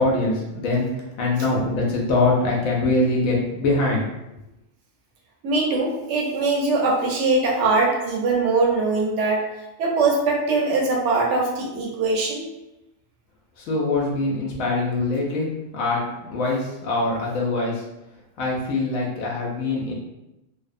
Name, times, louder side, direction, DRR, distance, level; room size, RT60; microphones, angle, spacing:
voice 1, 0.0-4.0 13.6-16.0 16.3-17.8 18.4-19.9, left 2 dB, 90° left, -3 dB, 1.0 m, -23 dB
voice 2, 5.4-9.5 9.8-12.4, right 3 dB, 65° right, -1 dB, 0.9 m, -21 dB
2.6 x 2.0 x 2.4 m, 0.92 s
omnidirectional pair, 1.4 m